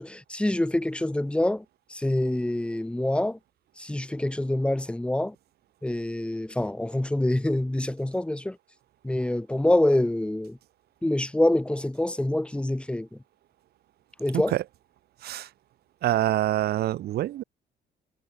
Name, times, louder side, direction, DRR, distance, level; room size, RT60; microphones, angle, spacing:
voice 1, 0.0-1.6 1.9-3.4 3.8-5.3 5.8-8.6 9.0-10.6 11.0-13.2 14.2-14.5, left 1 dB, 5° left, 2.5 m, -26 dB
voice 2, 14.3-14.6 15.2-15.5 16.0-17.4, right 13 dB, 70° right, 6.3 m, -26 dB
cardioid pair, 110°, 17 cm